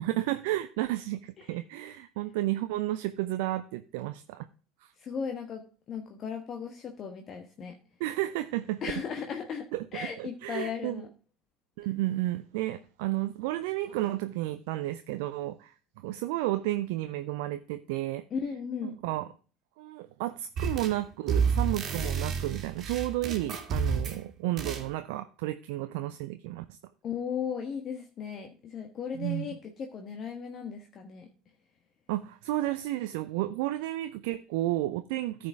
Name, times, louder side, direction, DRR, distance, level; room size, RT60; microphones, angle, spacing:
voice 1, 0.0-4.5 4.8-4.9 8.0-8.8 9.7-11.0 11.8-18.2 18.8-19.3 19.8-26.8 29.1-29.5 32.1-35.5, right 16 dB, 65° right, 10 dB, 0.5 m, -32 dB
voice 2, 5.0-5.6 5.9-7.7 8.8-9.6 9.9-11.1 18.3-18.9 27.0-31.3, left 6 dB, 40° left, 4 dB, 1.2 m, -36 dB
sound 1, 20.6-21.0 21.3-24.2 24.6-24.9, right 6 dB, 40° right, 2.3 m, -30 dB
14.0 x 5.2 x 3.5 m, 0.39 s
figure-of-eight pair, 70°, 0 cm